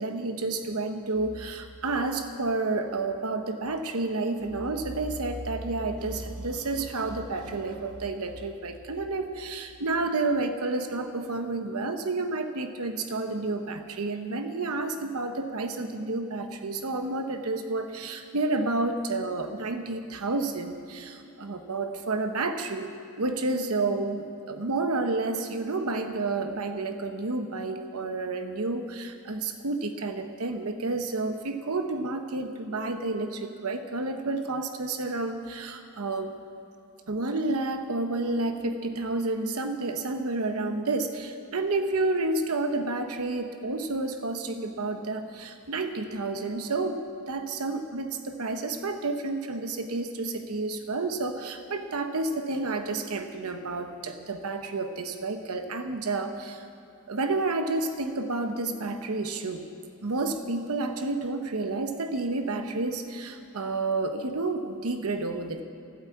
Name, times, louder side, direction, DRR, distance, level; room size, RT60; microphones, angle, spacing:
voice 1, 0.0-36.4 37.1-56.6 57.1-59.7 60.0-65.6, right 3 dB, 85° right, 7 dB, 0.9 m, -30 dB
13.0 x 12.0 x 8.3 m, 2.8 s
head